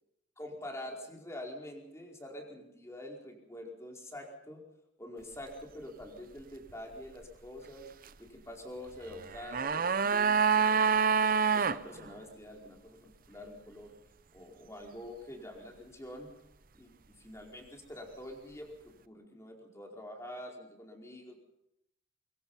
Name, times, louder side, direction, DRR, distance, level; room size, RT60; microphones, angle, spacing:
voice 1, 0.4-4.6 5.0-7.9 8.2-14.0 14.3-16.3 16.7-21.4, left 1 dB, 15° left, 0 dB, 4.7 m, -46 dB
sound 1, 9.2-11.8 12.1-12.2, right 6 dB, 50° right, 0.7 m, -26 dB
24.5 x 23.0 x 5.6 m, 0.81 s
head